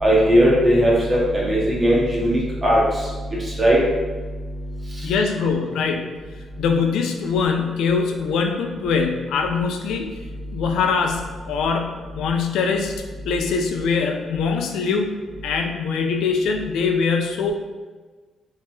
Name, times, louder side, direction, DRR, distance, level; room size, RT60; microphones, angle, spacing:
voice 1, 0.0-3.1 3.4-3.8 5.0-5.1, equal, 20° right, -5 dB, 0.7 m, -18 dB
voice 2, 5.0-6.2 6.6-10.1 10.5-15.1 15.4-17.5, left 5 dB, 85° left, 4 dB, 0.3 m, -23 dB
2.8 x 2.1 x 3.1 m, 1.3 s
cardioid pair, 120°, 0 cm